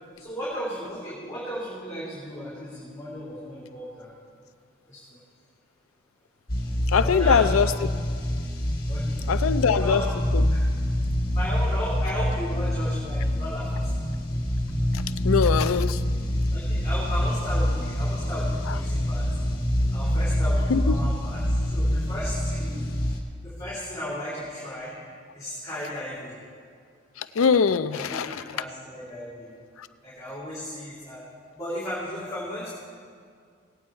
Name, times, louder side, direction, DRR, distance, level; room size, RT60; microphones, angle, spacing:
voice 1, 0.2-4.1 4.9-5.2 7.0-7.6 8.9-9.2 9.6-10.1 10.5-10.6 11.3-13.9 16.5-19.3 19.9-21.4 21.7-23.1 23.4-24.9 25.3-26.4 27.9-29.5 30.0-31.2 31.5-32.7, equal, 15° left, -9 dB, 3.0 m, -35 dB
sound 1, 6.5-23.2, equal, 45° left, 1.5 m, -26 dB
voice 2, 6.9-7.9 9.3-10.0 10.3-10.4 14.9-16.0 20.7-21.0 27.2-28.4 29.8-29.9, left 6 dB, 90° left, 12 dB, 0.5 m, -23 dB
18.5 x 8.5 x 4.5 m, 2.1 s
head